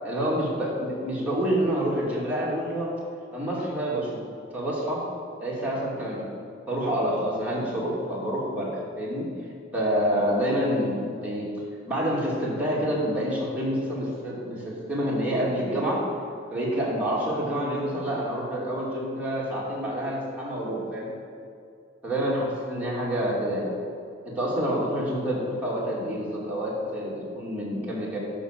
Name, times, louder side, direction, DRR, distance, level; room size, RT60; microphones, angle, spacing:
voice 1, 0.0-2.9 3.3-4.2 4.5-5.0 5.4-6.3 6.7-9.3 9.7-11.5 11.9-16.0 16.5-21.1 22.0-23.7 24.2-28.2, equal, 10° right, -6 dB, 2.7 m, -27 dB
12.5 x 5.3 x 6.7 m, 2.4 s
head